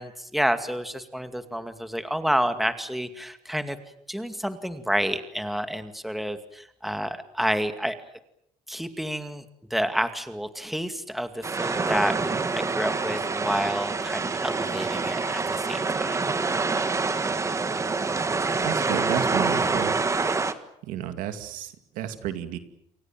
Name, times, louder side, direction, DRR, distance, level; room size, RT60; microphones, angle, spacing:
voice 1, 0.0-3.8 4.1-8.0 8.7-9.4 9.7-16.2, equal, ahead, 8 dB, 2.2 m, -29 dB
sound 1, 11.4-20.5, right 4 dB, 20° right, 1.7 m, -26 dB
voice 2, 18.6-19.9 20.9-22.6, right 11 dB, 85° right, 8 dB, 2.5 m, -32 dB
29.0 x 24.0 x 7.5 m, 0.75 s
cardioid pair, 120°, 14 cm